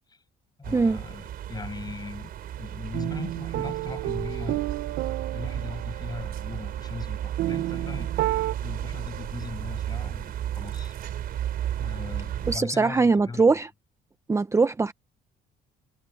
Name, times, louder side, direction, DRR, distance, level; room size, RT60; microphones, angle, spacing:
voice 1, 0.6-2.3 2.6-4.7 5.3-8.1 8.6-10.9 11.8-13.6, left 4 dB, 25° left, 7.5 m, -38 dB
sound 1, 0.6-12.6, right 11 dB, 60° right, 4.1 m, -34 dB
sound 2, 2.9-8.5, right 16 dB, 85° right, 0.9 m, -31 dB
voice 2, 12.5-13.7 14.3-14.9, right 4 dB, 15° right, 0.8 m, -21 dB
cardioid pair, 110°, 17 cm